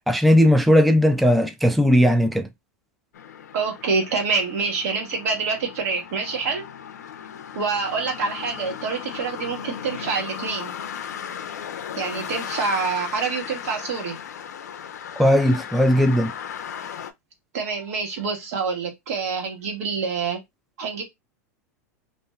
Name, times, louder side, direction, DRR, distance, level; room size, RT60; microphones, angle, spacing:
voice 1, 0.1-2.5 15.2-16.3, equal, ahead, 0.3 m, -17 dB
sound 1, 3.1-17.1, left 8 dB, 80° left, 0.4 m, -36 dB
voice 2, 3.5-6.6 7.5-10.7 12.0-14.2 17.5-20.4 20.8-21.0, right 4 dB, 65° right, 1.2 m, -26 dB
2.5 x 2.2 x 3.1 m
hypercardioid pair, 100°, 9 cm